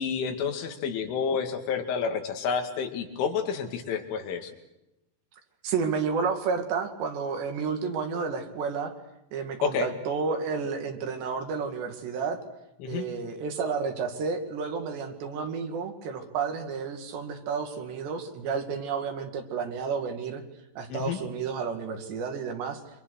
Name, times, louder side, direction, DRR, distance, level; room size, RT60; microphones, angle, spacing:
voice 1, 0.0-4.5 9.6-9.9 12.8-13.0 20.9-21.2, left 6 dB, 90° left, 4 dB, 4.8 m, -29 dB
voice 2, 5.6-8.9 9.3-12.4 12.9-20.4 20.8-22.8, right 5 dB, 65° right, 5 dB, 4.3 m, -31 dB
27.5 x 25.5 x 6.5 m, 0.91 s
omnidirectional pair, 5.4 m